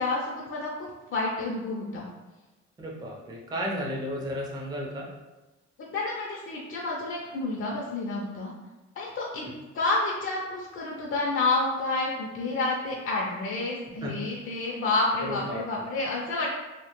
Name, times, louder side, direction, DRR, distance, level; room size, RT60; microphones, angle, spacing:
voice 1, 0.0-2.1 5.8-8.5 9.0-9.5 9.7-16.5, left 2 dB, 45° left, -2 dB, 0.4 m, -29 dB
voice 2, 2.8-5.1 9.4-9.5 14.0-14.2 15.2-15.6, equal, 15° right, -3 dB, 0.4 m, -33 dB
2.1 x 2.0 x 2.9 m, 1.1 s
cardioid pair, 90°, 30 cm